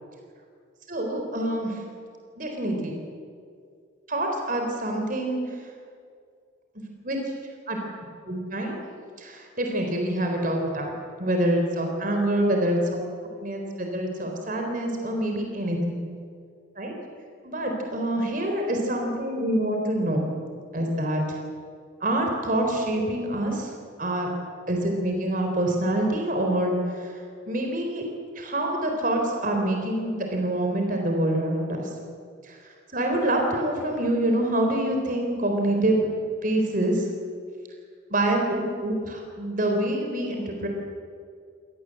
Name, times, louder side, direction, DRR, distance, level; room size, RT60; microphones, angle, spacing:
voice 1, 0.9-1.7 2.4-2.9 4.1-5.4 7.0-7.2 7.7-7.8 8.3-8.8 9.2-10.9 11.2-13.0 13.4-16.0 16.8-16.9 17.4-20.2 20.7-21.2 22.0-23.7 24.0-24.3 24.7-27.1 27.5-28.0 28.4-31.8 32.9-36.1 36.4-37.0 38.1-40.7, right 1 dB, 45° right, 2 dB, 4.1 m, -26 dB
26.5 x 18.5 x 7.9 m, 2.2 s
head